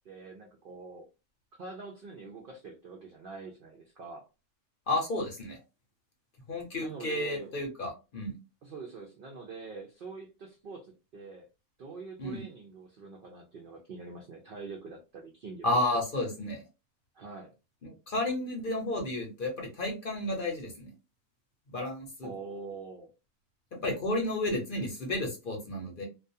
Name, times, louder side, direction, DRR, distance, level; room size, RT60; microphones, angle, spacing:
voice 1, 0.0-1.0 1.6-4.3 6.8-7.5 8.6-11.5 11.8-15.8 17.1-17.5 22.2-23.1, right 4 dB, 65° right, 0 dB, 0.5 m, -44 dB
voice 2, 4.9-5.6 6.5-8.3 12.2-12.4 15.6-16.6 17.8-20.9 21.7-22.3 23.8-26.1, left 1 dB, 50° left, 0 dB, 0.8 m, -32 dB
2.3 x 2.3 x 2.6 m, 0.29 s
omnidirectional pair, 1.4 m